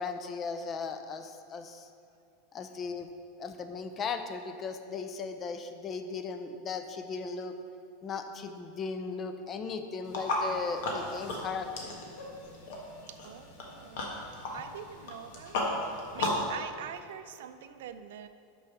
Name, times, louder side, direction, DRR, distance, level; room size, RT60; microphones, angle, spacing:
voice 1, 0.0-1.9 2.5-3.1 3.4-7.5 8.0-11.9, left 5 dB, 30° left, 8 dB, 0.6 m, -37 dB
sound 1, 10.0-16.5, left 1 dB, 70° left, 1.5 m, -35 dB
voice 2, 13.1-14.2 14.5-18.3, right 9 dB, 80° right, 10 dB, 0.5 m, -44 dB
6.1 x 5.8 x 6.1 m, 2.4 s
supercardioid pair, 135°, 0 cm